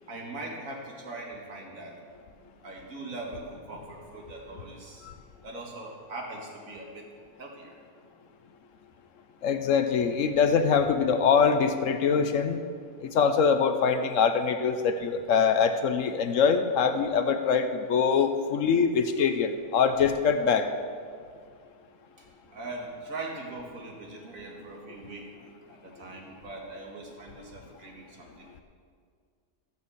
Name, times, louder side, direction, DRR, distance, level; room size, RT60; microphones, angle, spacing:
voice 1, 0.1-2.1 2.4-5.1 5.4-7.1 7.4-7.8 22.2-25.3 25.7-28.5, right 2 dB, 65° right, -1 dB, 2.3 m, -41 dB
voice 2, 9.4-12.6 13.0-20.7, left 6 dB, 65° left, 8 dB, 1.0 m, -23 dB
14.5 x 6.4 x 7.0 m, 2.1 s
omnidirectional pair, 1.5 m